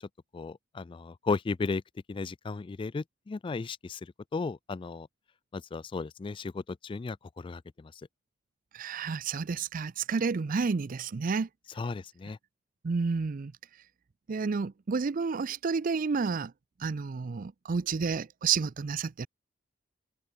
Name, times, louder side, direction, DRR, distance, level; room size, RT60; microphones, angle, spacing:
voice 1, 0.0-1.8 2.1-5.1 5.5-7.9 11.8-12.4, left 4 dB, 25° left, 0.3 m, -35 dB
voice 2, 8.7-11.5 12.8-13.5 14.3-16.5 16.8-19.3, right 5 dB, 45° right, 0.5 m, -30 dB
head